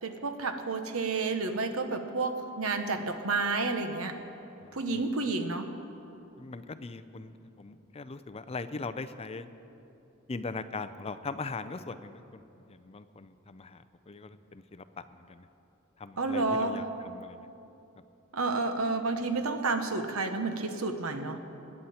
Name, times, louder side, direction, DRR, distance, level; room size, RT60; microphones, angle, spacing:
voice 1, 0.0-4.1 4.7-5.7 16.2-16.8 18.3-21.4, right 3 dB, 85° right, 7 dB, 1.1 m, -30 dB
voice 2, 4.6-5.0 6.4-9.5 10.3-12.4 12.7-15.5 16.0-17.5, left 3 dB, 30° left, 11 dB, 0.5 m, -40 dB
23.0 x 9.8 x 4.3 m, 2.9 s
head